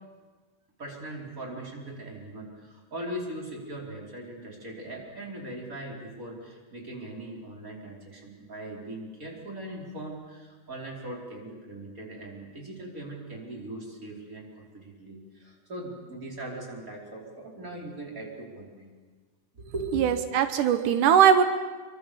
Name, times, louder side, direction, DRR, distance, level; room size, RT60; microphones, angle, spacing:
voice 1, 0.8-18.9 19.5-20.0, right 1 dB, 25° right, -1 dB, 5.1 m, -40 dB
voice 2, 19.9-21.4, right 8 dB, 85° right, 9 dB, 2.6 m, -20 dB
26.5 x 24.5 x 7.0 m, 1.4 s
omnidirectional pair, 3.5 m